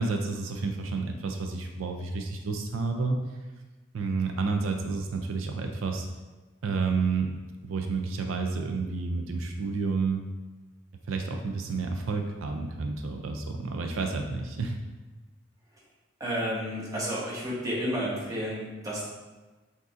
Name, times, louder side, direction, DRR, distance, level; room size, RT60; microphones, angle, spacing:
voice 1, 0.0-3.2 3.9-6.1 6.6-7.3 7.6-10.2 11.1-14.8, right 4 dB, 90° right, 4 dB, 0.4 m, -30 dB
voice 2, 16.2-19.0, equal, 15° right, -6 dB, 1.0 m, -31 dB
6.0 x 2.7 x 2.4 m, 1.2 s
head